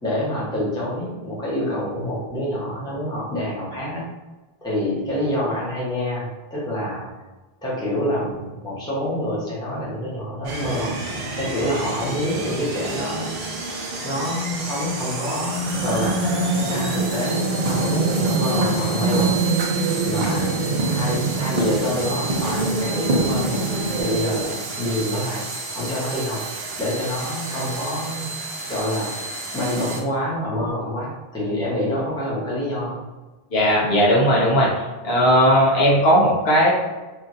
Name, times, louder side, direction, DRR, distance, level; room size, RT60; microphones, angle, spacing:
voice 1, 0.0-4.0 4.6-7.1 7.6-11.0 11.3-16.2 16.6-19.4 20.0-20.6 20.9-23.6 23.9-25.4 25.7-26.4 26.8-28.3 28.7-33.0, left 1 dB, 5° left, -8 dB, 0.8 m, -27 dB
sound 1, 10.4-30.0, right 3 dB, 70° right, 0.8 m, -31 dB
sound 2, 15.5-24.4, right 2 dB, 50° right, 0.5 m, -24 dB
voice 2, 33.5-34.7 35.0-36.7, equal, 75° left, -4 dB, 1.0 m, -17 dB
2.9 x 2.5 x 2.5 m, 1.2 s
omnidirectional pair, 1.0 m